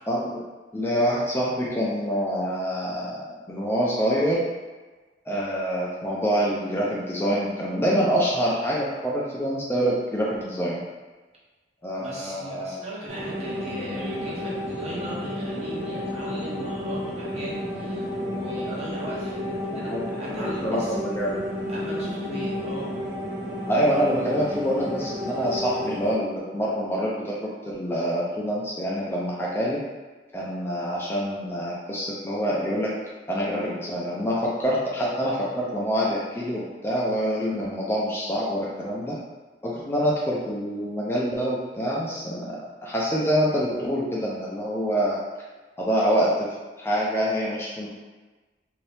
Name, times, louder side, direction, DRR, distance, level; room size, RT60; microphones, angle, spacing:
voice 1, 0.1-0.4 0.7-4.4 5.3-10.8 11.8-12.8 19.7-21.4 23.7-29.8 30.3-32.9 33.3-39.2 39.6-42.6 42.8-45.2 45.8-47.9, equal, 15° left, -6 dB, 0.4 m, -26 dB
voice 2, 12.0-19.9 20.2-20.9 21.7-23.0, right 1 dB, 35° right, -6 dB, 0.9 m, -38 dB
sound 1, 13.1-26.1, left 1 dB, 50° right, 1.3 m, -32 dB
2.8 x 2.7 x 3.3 m, 1.3 s
head